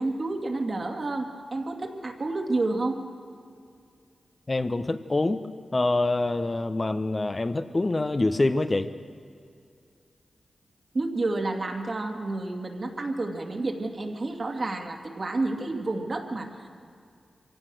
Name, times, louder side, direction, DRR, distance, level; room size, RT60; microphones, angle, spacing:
voice 1, 0.0-3.0 10.9-16.7, right 2 dB, 55° right, 2 dB, 2.5 m, -30 dB
voice 2, 4.5-5.5 5.7-8.9, left 2 dB, 40° left, 9 dB, 1.0 m, -25 dB
24.0 x 17.0 x 6.4 m, 2.3 s
cardioid pair, 45°, 0 cm